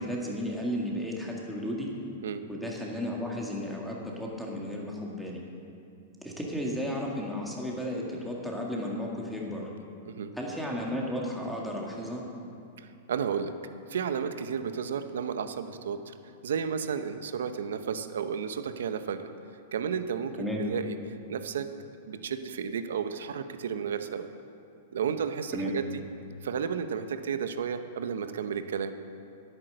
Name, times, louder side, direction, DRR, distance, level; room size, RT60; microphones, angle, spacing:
voice 1, 0.0-1.9 2.5-5.4 6.2-9.7 10.4-12.2 20.4-20.6 25.5-25.7, equal, ahead, -3 dB, 1.9 m, -33 dB
voice 2, 12.8-13.5 13.9-16.1 16.4-19.3 19.7-21.7 22.1-24.3 24.9-26.0 26.4-28.9, right 7 dB, 85° right, 10 dB, 0.8 m, -32 dB
10.5 x 9.0 x 7.9 m, 2.5 s
hypercardioid pair, 150°, 0 cm